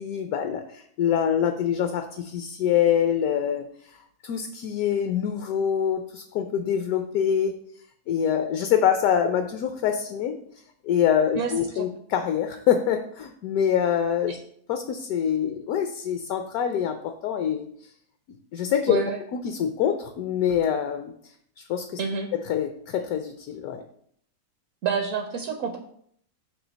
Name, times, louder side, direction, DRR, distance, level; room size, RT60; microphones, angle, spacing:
voice 1, 0.0-3.6 4.2-7.6 8.1-10.4 10.8-14.4 14.7-17.6 18.5-21.1 21.7-22.0 22.3-23.8, left 8 dB, 70° left, 6 dB, 1.0 m, -25 dB
voice 2, 11.4-11.9 14.3-14.4 18.9-19.2 22.0-22.3 24.8-25.8, right 6 dB, 65° right, 5 dB, 0.9 m, -28 dB
7.1 x 2.8 x 5.1 m, 0.65 s
omnidirectional pair, 1.8 m